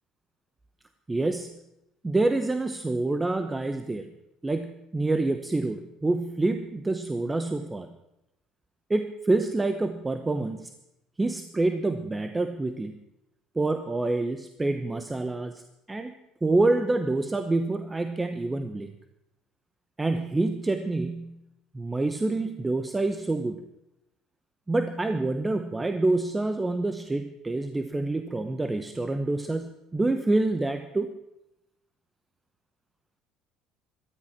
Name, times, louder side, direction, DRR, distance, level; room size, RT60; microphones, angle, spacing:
voice 1, 1.1-1.5 2.0-4.1 4.4-7.9 8.9-10.7 11.2-12.9 13.5-15.6 15.9-16.1 16.4-18.9 20.0-21.4 21.7-23.6 24.7-31.1, right 2 dB, 15° right, 8 dB, 0.9 m, -27 dB
13.0 x 13.0 x 6.0 m, 0.85 s
supercardioid pair, 95°, 0 cm